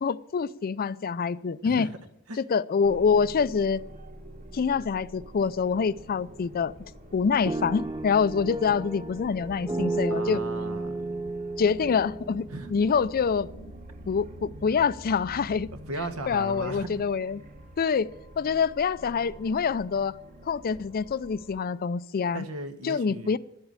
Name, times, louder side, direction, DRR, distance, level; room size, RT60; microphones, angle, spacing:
voice 1, 0.0-1.9 2.4-3.8 4.5-6.7 7.1-10.4 11.6-13.6 14.1-15.7 16.3-17.4 17.8-18.1 18.4-20.2 20.4-22.5 22.8-23.4, left 5 dB, 40° left, 0.4 m, -26 dB
voice 2, 1.6-2.0 2.3-2.4 10.1-11.1 12.5-12.7 15.9-17.1 22.3-23.4, right 2 dB, 75° right, 1.3 m, -36 dB
sound 1, 2.8-21.6, right 1 dB, 35° right, 1.3 m, -46 dB
sound 2, 7.5-13.5, right 2 dB, 20° right, 0.6 m, -33 dB
12.0 x 8.1 x 8.9 m
head